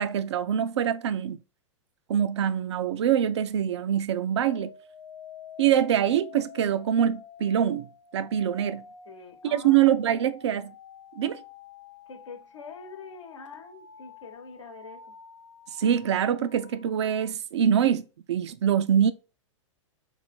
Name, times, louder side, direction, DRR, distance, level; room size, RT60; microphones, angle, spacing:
voice 1, 0.0-1.4 2.1-4.7 5.6-7.9 8.1-8.8 9.4-10.7 11.2-11.4 15.8-19.1, right 9 dB, 60° right, 0.4 m, -24 dB
sound 1, 4.4-17.3, left 7 dB, 55° left, 0.8 m, -48 dB
voice 2, 9.0-9.8 10.1-10.3 12.1-15.1, left 4 dB, 70° left, 1.0 m, -45 dB
3.1 x 2.6 x 4.1 m
figure-of-eight pair, 100°, 16 cm